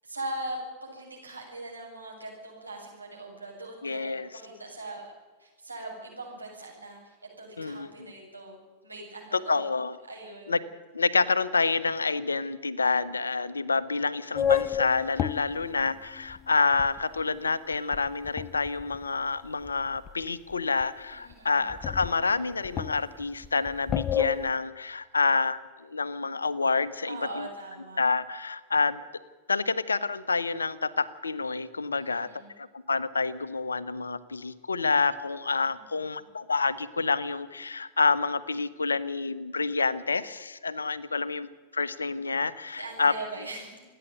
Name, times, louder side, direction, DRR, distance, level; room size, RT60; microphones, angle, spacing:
voice 1, 0.0-5.1 5.4-8.6 8.8-9.6 10.1-10.5 15.4-15.9 21.1-21.7 27.0-28.0 31.9-32.5 35.7-36.2 42.7-43.8, right 2 dB, 85° right, -2 dB, 7.8 m, -41 dB
voice 2, 3.8-4.3 7.6-7.9 9.3-9.9 10.5-10.6 10.9-27.4 28.0-29.0 29.5-32.3 32.6-43.1, left 4 dB, 75° left, 15 dB, 1.0 m, -28 dB
sound 1, 14.3-17.2 17.7-19.0 19.6-20.2 20.5-20.6 20.8-20.9 21.3-21.4 21.7-24.5, left 9 dB, 30° left, 0.5 m, -30 dB
28.0 x 10.0 x 9.3 m, 1.3 s
figure-of-eight pair, 90°, 0 cm